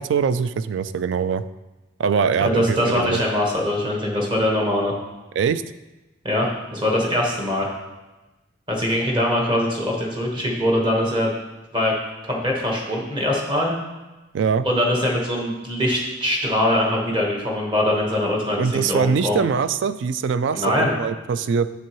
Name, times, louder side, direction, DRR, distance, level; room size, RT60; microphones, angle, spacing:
voice 1, 0.0-1.4 2.0-3.2 5.4-5.6 14.3-14.7 18.6-20.7 21.0-21.7, right 6 dB, 65° right, 14 dB, 0.3 m, -22 dB
voice 2, 2.4-4.9 6.2-7.7 8.7-11.3 11.7-11.9 12.3-13.7 14.6-19.4 20.5-20.9, left 1 dB, 25° right, -1 dB, 1.2 m, -22 dB
7.3 x 6.9 x 3.0 m, 1.1 s
head